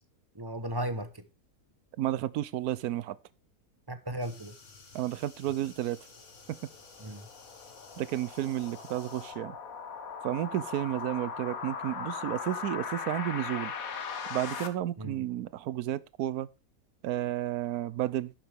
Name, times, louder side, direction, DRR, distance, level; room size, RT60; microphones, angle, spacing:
voice 1, 0.3-1.2 3.9-4.5 7.0-7.3 15.0-15.2, right 1 dB, 20° right, 0.8 m, -36 dB
voice 2, 2.0-3.2 4.9-6.0 8.0-9.6 10.2-13.7 14.3-16.5 17.0-18.3, right 13 dB, 85° right, 1.1 m, -32 dB
sound 1, 4.2-9.3, left 4 dB, 55° left, 1.9 m, -54 dB
sound 2, 6.0-14.7, left 6 dB, 70° left, 1.6 m, -39 dB
11.5 x 7.2 x 3.4 m
omnidirectional pair, 1.5 m